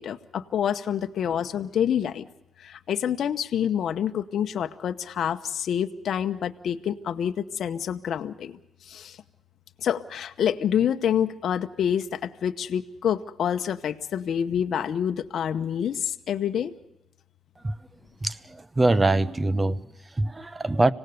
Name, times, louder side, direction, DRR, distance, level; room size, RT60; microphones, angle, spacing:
voice 1, 0.0-2.3 2.6-8.5 8.8-9.2 9.8-16.7, left 9 dB, 65° left, 0.9 m, -27 dB
voice 2, 18.2-20.9, right 2 dB, 20° right, 0.8 m, -24 dB
26.0 x 18.0 x 6.5 m
cardioid pair, 90°, 0 cm